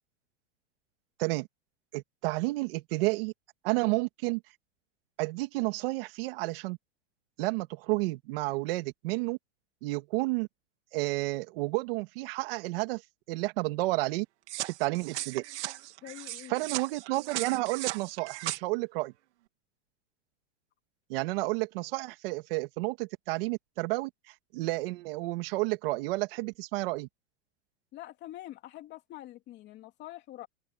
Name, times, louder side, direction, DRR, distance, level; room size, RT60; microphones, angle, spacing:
voice 1, 1.9-3.3 3.6-4.4 5.2-6.8 7.4-9.4 9.8-10.5 10.9-13.0 13.3-14.3 14.7-15.4 16.5-19.1 21.1-27.1, right 22 dB, 50° right, 2.5 m, -31 dB
sound 1, 14.5-18.6, right 16 dB, 65° right, 3.0 m, -37 dB
voice 2, 16.0-16.8 27.9-30.5, left 14 dB, 30° left, 3.1 m, -45 dB
open air
supercardioid pair, 160°, 37 cm